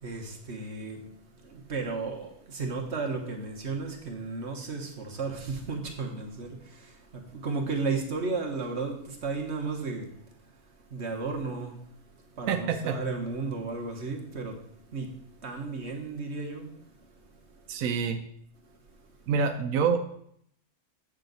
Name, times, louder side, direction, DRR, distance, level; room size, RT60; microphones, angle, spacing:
voice 1, 0.0-1.1 1.4-10.1 10.9-11.8 12.3-16.7, right 4 dB, 50° right, 1.3 m, -34 dB
voice 2, 12.5-13.0 17.7-18.2 19.3-20.0, right 6 dB, 70° right, 1.0 m, -26 dB
7.8 x 6.3 x 4.0 m
omnidirectional pair, 1.6 m